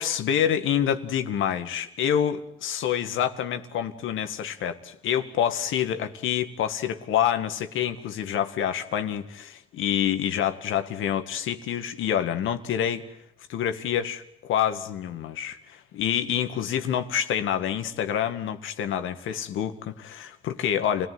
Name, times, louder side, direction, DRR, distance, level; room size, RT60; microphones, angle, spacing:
voice 1, 0.0-13.0 13.5-21.1, left 9 dB, 80° left, 8 dB, 1.9 m, -27 dB
29.0 x 18.0 x 9.5 m, 0.76 s
cardioid pair, 90°, 20 cm